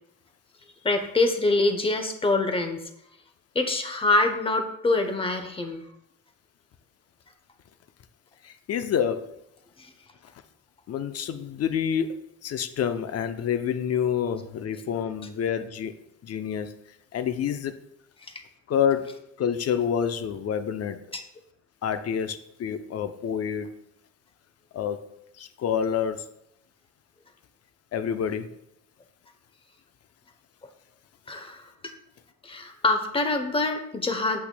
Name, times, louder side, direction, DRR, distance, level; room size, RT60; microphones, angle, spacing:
voice 1, 0.8-2.8 3.5-5.8 9.8-9.9 21.1-21.2 31.3-31.9 32.4-34.4, left 2 dB, 20° left, 0.8 m, -25 dB
voice 2, 8.4-9.3 10.9-12.1 12.4-15.9 16.2-16.7 17.1-17.8 18.7-21.0 21.8-23.7 24.7-25.0 25.4-26.2 27.9-28.5, left 8 dB, 55° left, 0.6 m, -28 dB
8.3 x 5.7 x 2.2 m
cardioid pair, 90°, 30 cm